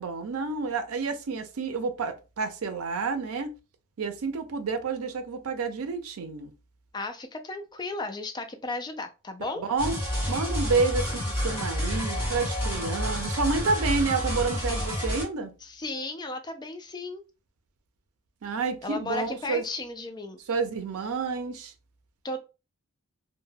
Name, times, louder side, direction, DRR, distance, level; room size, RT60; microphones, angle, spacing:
voice 1, 0.0-3.6 4.0-6.5 9.6-10.0 10.3-15.5 18.4-19.6 20.5-21.7, right 4 dB, 80° right, 0.5 m, -29 dB
voice 2, 6.9-9.6 15.6-17.2 18.8-20.4 22.2-22.4, left 2 dB, 20° left, 0.3 m, -35 dB
sound 1, 9.8-15.2, equal, 10° right, 1.0 m, -29 dB
2.2 x 2.1 x 3.2 m
head